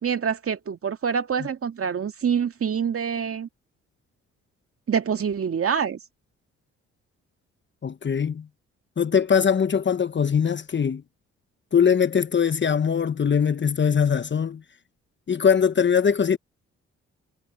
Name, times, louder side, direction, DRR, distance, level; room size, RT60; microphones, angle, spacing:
voice 1, 0.0-3.5 4.9-6.0, right 7 dB, 50° right, 2.2 m, -26 dB
voice 2, 7.8-8.5 9.0-11.0 11.7-14.6 15.3-16.4, left 7 dB, 40° left, 1.1 m, -21 dB
supercardioid pair, 60°, 30 cm